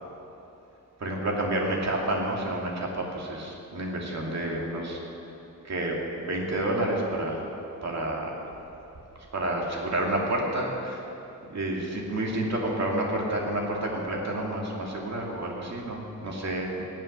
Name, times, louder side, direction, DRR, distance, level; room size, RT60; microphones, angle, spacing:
voice 1, 1.0-5.0 5.6-7.4 7.8-8.5 9.3-11.0 11.5-16.8, right 1 dB, 55° right, -1 dB, 2.6 m, -29 dB
16.0 x 7.6 x 9.9 m, 3.0 s
wide cardioid pair, 145°, 33 cm